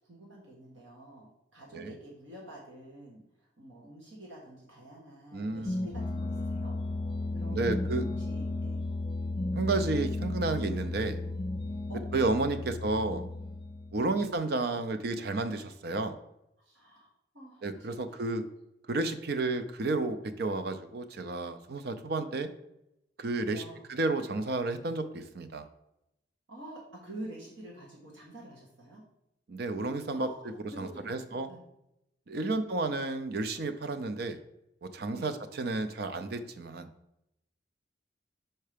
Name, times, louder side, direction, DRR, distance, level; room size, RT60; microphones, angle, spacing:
voice 1, 0.0-6.7 7.3-8.8 11.9-12.0 12.3-13.1 14.0-14.3 16.6-18.2 23.5-23.9 26.5-29.0 30.1-31.6 32.3-32.5 35.1-35.3, right 1 dB, 80° right, -3 dB, 1.3 m, -48 dB
voice 2, 5.3-5.9 7.5-8.1 9.5-11.2 12.1-13.3 13.9-16.1 17.6-18.4 18.9-22.5 23.2-23.6 23.9-25.7 29.5-30.3 30.8-31.5 32.3-34.4 34.8-36.9, right 3 dB, 55° right, 10 dB, 0.5 m, -31 dB
sound 1, 5.4-14.2, left 2 dB, 25° left, 0.3 m, -34 dB
5.6 x 4.5 x 5.0 m, 0.84 s
head